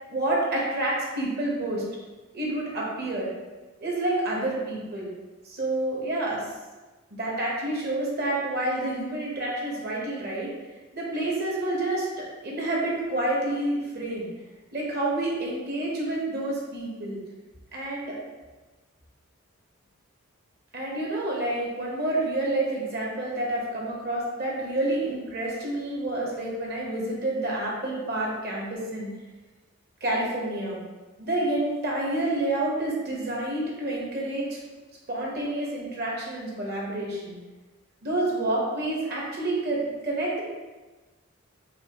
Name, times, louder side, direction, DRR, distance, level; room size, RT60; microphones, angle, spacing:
voice 1, 0.1-1.8 2.3-3.3 3.8-5.1 5.4-6.5 7.1-10.5 10.9-14.3 14.7-17.2 17.7-18.1 20.7-29.1 30.0-30.8 31.2-34.6 35.1-37.4 38.0-40.4, right 1 dB, 50° right, -3 dB, 1.0 m, -28 dB
5.5 x 2.3 x 2.9 m, 1.2 s
head